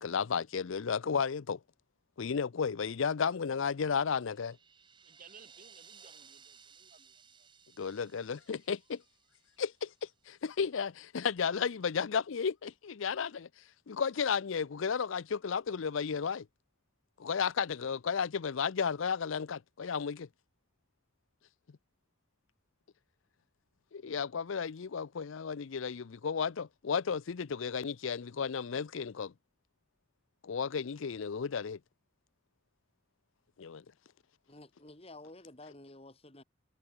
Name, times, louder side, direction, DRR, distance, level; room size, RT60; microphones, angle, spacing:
voice 1, 0.0-1.6 2.2-4.6 7.8-9.0 9.6-13.5 13.9-16.5 17.2-20.3 23.9-29.3 30.4-31.8 33.6-33.8, left 6 dB, 75° left, 0.5 m, -33 dB
sound 1, 4.1-10.2, right 6 dB, 25° right, 1.4 m, -59 dB
voice 2, 5.0-7.5, right 5 dB, 40° right, 4.9 m, -59 dB
voice 3, 34.5-36.4, left 2 dB, 30° left, 2.9 m, -51 dB
head